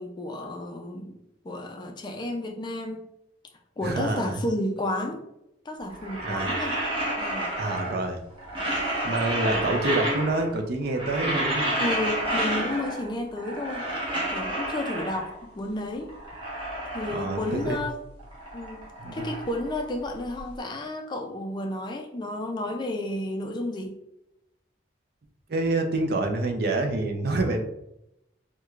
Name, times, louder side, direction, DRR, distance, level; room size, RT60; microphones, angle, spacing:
voice 1, 0.0-3.1 3.8-5.2 5.7-6.8 7.2-7.5 9.5-9.7 11.8-13.9 14.3-16.1 16.9-18.0 18.5-24.0, left 1 dB, 25° left, 3 dB, 0.3 m, -32 dB
voice 2, 3.8-4.4 6.2-6.5 7.6-8.2 9.0-11.7 17.1-17.8 19.0-19.3 25.5-27.6, right 2 dB, 55° right, 4 dB, 0.5 m, -27 dB
sound 1, 5.9-8.1 8.4-10.6 10.8-13.1 13.4-15.4 15.9-17.9 18.2-20.4, right 1 dB, 25° right, 1.0 m, -30 dB
4.5 x 2.2 x 2.4 m, 0.86 s
head